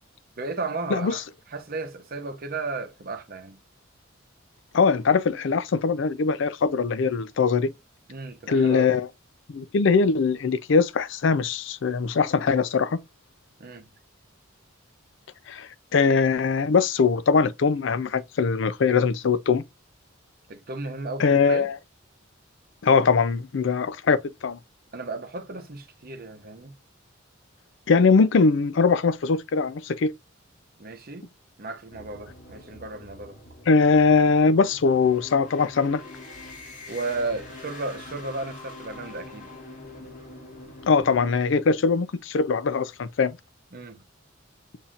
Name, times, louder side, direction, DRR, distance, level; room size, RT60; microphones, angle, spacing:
voice 1, 0.4-3.6 8.1-8.9 13.6-13.9 20.5-21.7 24.9-26.7 30.8-31.3 31.6-33.4 36.9-39.5 43.7-44.0, right 3 dB, 50° right, 0.8 m, -34 dB
voice 2, 4.7-7.7 8.5-9.1 9.5-13.0 15.5-19.6 21.2-21.8 22.8-24.2 24.4-24.6 27.9-30.1 33.7-36.0 40.9-43.4, left 5 dB, 65° left, 0.4 m, -21 dB
sound 1, 31.9-41.4, left 2 dB, 40° left, 1.3 m, -44 dB
7.1 x 2.7 x 2.4 m
head